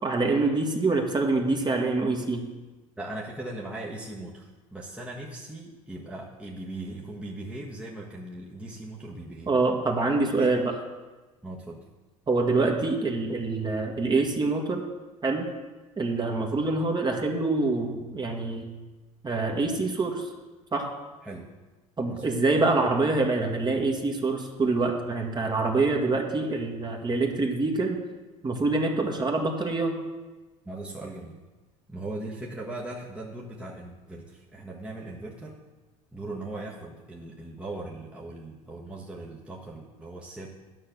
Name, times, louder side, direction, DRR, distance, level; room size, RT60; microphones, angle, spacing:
voice 1, 0.0-2.5 9.5-10.8 12.3-14.8 15.2-15.5 16.0-18.7 19.2-20.3 20.7-20.9 22.0-28.0 28.4-30.0, right 3 dB, 25° right, 2 dB, 1.7 m, -25 dB
voice 2, 3.0-9.5 10.4-10.6 11.4-11.8 21.2-21.5 22.1-22.4 30.6-31.4 31.9-35.6 36.1-40.5, right 2 dB, 5° right, -4 dB, 1.4 m, -39 dB
11.0 x 5.7 x 6.7 m, 1.2 s
figure-of-eight pair, 70°, 18 cm